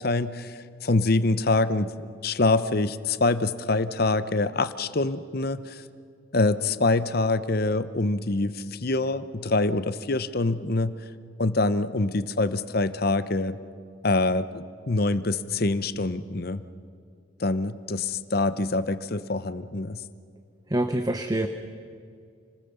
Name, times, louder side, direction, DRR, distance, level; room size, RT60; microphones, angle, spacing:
voice 1, 0.0-5.8 6.3-10.9 11.4-13.6 14.0-16.6 17.4-20.0, left 2 dB, 50° left, 13 dB, 0.8 m, -25 dB
voice 2, 20.7-21.5, right 1 dB, 20° right, 7 dB, 0.8 m, -25 dB
29.0 x 20.0 x 6.9 m, 2.3 s
head